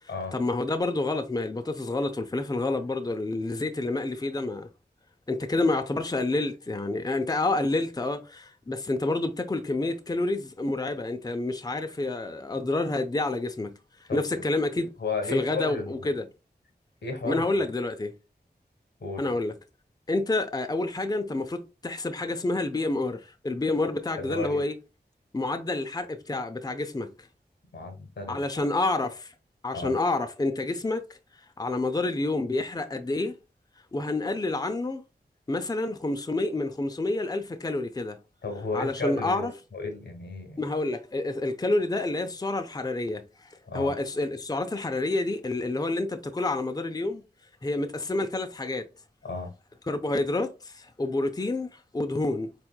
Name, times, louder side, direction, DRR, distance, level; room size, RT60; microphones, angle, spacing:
voice 1, 0.3-4.7 5.3-13.7 14.1-14.9 15.3-16.2 17.2-18.1 19.2-19.5 20.1-24.7 25.3-27.1 28.3-29.3 29.6-31.0 31.6-33.3 33.9-35.0 35.5-38.2 38.7-39.5 40.6-47.2 47.6-48.9 49.9-52.5, left 2 dB, 20° left, 0.6 m, -28 dB
voice 2, 15.0-16.0 17.0-17.6 19.0-19.2 24.2-24.6 27.7-28.4 29.7-30.0 38.4-40.6 43.6-43.9 49.2-49.5, left 3 dB, 90° left, 1.3 m, -33 dB
4.5 x 3.4 x 2.2 m
cardioid pair, 45°, 18 cm